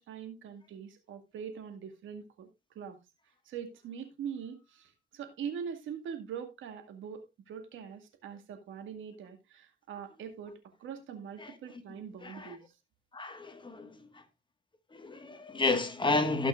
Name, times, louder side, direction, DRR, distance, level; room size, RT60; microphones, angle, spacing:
voice 1, 0.0-2.5 2.8-3.0 3.5-12.6, right 7 dB, 75° right, 2.1 m, -42 dB
voice 2, 12.2-12.6 13.1-13.9 14.9-16.5, left 3 dB, 25° left, 1.6 m, -31 dB
17.5 x 6.1 x 2.5 m
cardioid pair, 90°, 20 cm